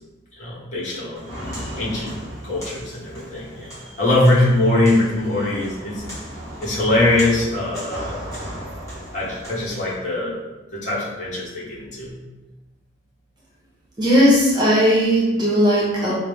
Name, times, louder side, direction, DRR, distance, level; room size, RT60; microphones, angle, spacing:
voice 1, 0.3-1.3 1.8-2.1 2.4-3.7 4.0-6.0 6.6-8.2 9.1-10.3 10.7-12.1, left 1 dB, 40° left, -6 dB, 1.2 m, -21 dB
Walk footsteps, 1.2-9.9, equal, 15° left, 1.2 m, -35 dB
voice 2, 14.0-16.1, equal, 25° right, -6 dB, 0.8 m, -17 dB
5.1 x 2.1 x 3.4 m, 1.1 s
head